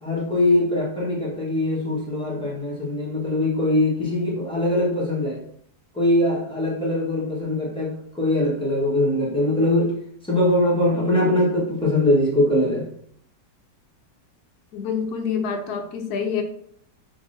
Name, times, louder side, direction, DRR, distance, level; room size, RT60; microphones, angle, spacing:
voice 1, 0.0-5.4 5.9-9.9 10.3-12.8, left 1 dB, 5° left, -6 dB, 0.9 m, -22 dB
voice 2, 14.7-16.4, left 6 dB, 70° left, 5 dB, 1.0 m, -27 dB
5.2 x 2.9 x 2.6 m, 0.64 s
omnidirectional pair, 1.9 m